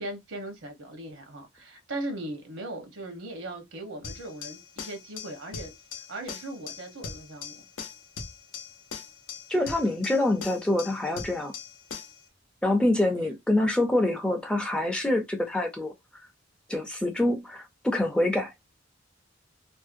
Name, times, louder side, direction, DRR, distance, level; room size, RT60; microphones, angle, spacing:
voice 1, 0.0-5.7 6.1-7.6, right 1 dB, 75° right, 0.8 m, -38 dB
sound 1, 4.0-12.2, left 5 dB, 85° left, 0.6 m, -41 dB
voice 2, 9.5-11.5 12.6-15.9 16.7-18.5, left 1 dB, 5° left, 0.4 m, -26 dB
2.6 x 2.1 x 2.5 m
head